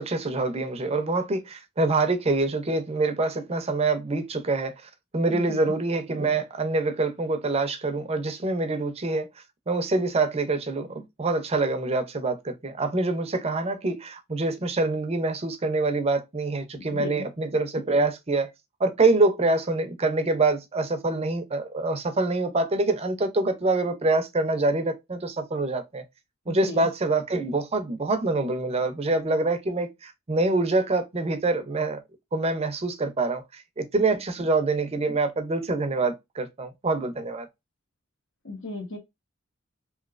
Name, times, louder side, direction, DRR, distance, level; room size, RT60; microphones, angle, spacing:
voice 1, 0.0-4.7 5.1-9.3 9.7-18.5 18.8-26.0 26.5-32.0 32.3-37.5, right 2 dB, 30° right, 0.6 m, -25 dB
voice 2, 5.3-5.7 17.0-17.3 26.6-26.9 38.4-39.0, left 2 dB, 65° left, 0.9 m, -35 dB
3.1 x 2.8 x 2.4 m
head